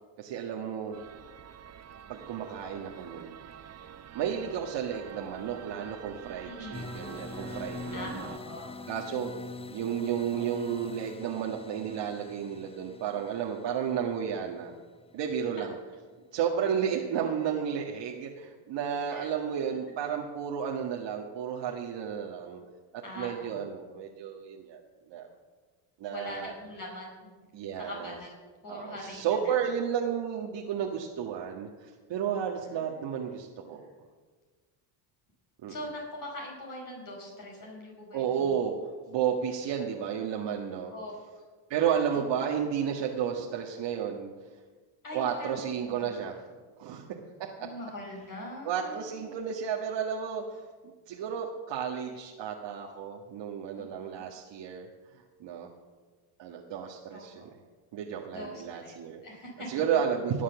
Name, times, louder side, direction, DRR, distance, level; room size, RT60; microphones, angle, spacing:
voice 1, 0.2-1.0 2.1-3.3 4.1-8.3 8.9-9.3 9.6-14.7 15.1-15.7 16.3-22.6 23.2-24.8 25.1-25.3 26.0-26.5 27.5-28.1 28.7-33.9 35.6-35.7 38.1-38.7 39.1-40.9 41.7-44.3 45.1-46.5 46.8-47.1 47.6-47.7 48.6-50.7 51.1-54.9 55.4-55.7 56.4-57.5 57.9-59.2 59.7-60.4, right 8 dB, 60° right, -1 dB, 1.7 m, -32 dB
sound 1, 0.9-8.4, right 8 dB, 30° right, 0.9 m, -47 dB
voice 2, 6.4-6.8 7.9-8.8 19.1-19.3 23.0-23.6 26.1-27.3 27.8-28.3 28.6-29.5 32.6-33.4 33.8-33.9 35.7-38.5 40.9-41.1 41.9-42.0 45.0-46.2 47.6-49.3 53.8-53.9 54.1-54.2 57.1-57.4 58.3-59.7, left 1 dB, 40° left, -1 dB, 5.4 m, -42 dB
sound 2, 6.7-15.5, left 3 dB, 10° left, 0.6 m, -44 dB
19.0 x 7.4 x 7.1 m, 1.4 s
supercardioid pair, 90°, 49 cm